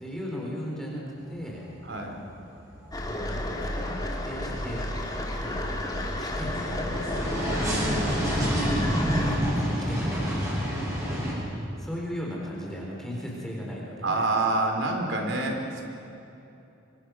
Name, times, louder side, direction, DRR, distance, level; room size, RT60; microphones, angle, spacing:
voice 1, 0.0-1.6 3.0-4.8 5.3-5.8 6.2-7.1 7.6-7.7 8.1-10.7 11.8-14.3, equal, ahead, -4 dB, 4.1 m, -37 dB
sound 1, 1.2-1.8 2.1-11.3, equal, 15° right, 7.6 m, -29 dB
voice 2, 1.8-2.1 7.6-8.0 14.0-15.8, right 2 dB, 80° right, 2 dB, 4.2 m, -27 dB
sound 2, 2.9-9.4, left 1 dB, 20° left, 2.6 m, -32 dB
25.5 x 25.0 x 6.5 m, 2.8 s
head